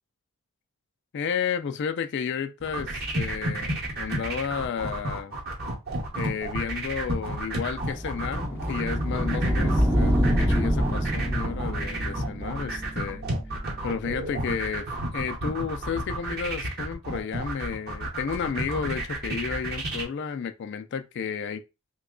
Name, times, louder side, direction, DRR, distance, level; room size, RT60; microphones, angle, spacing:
voice 1, 1.1-5.4 6.1-13.3 13.8-14.9 15.1-21.6, left 6 dB, 50° left, 0.3 m, -32 dB
sound 1, 2.6-20.0, right 1 dB, 45° right, 0.9 m, -31 dB
sound 2, 7.3-14.2, equal, 10° right, 0.5 m, -27 dB
3.0 x 2.2 x 3.6 m
head